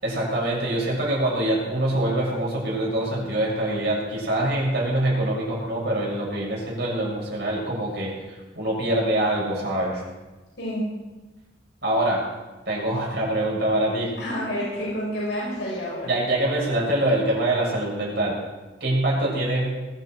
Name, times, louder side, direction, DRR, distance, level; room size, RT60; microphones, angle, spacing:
voice 1, 0.0-10.0 11.8-12.2 12.6-14.1 16.1-18.4 18.8-19.7, right 1 dB, 60° right, -3 dB, 6.8 m, -24 dB
voice 2, 14.2-16.1, equal, 70° left, -6 dB, 6.8 m, -29 dB
21.0 x 13.0 x 4.6 m, 1.2 s
head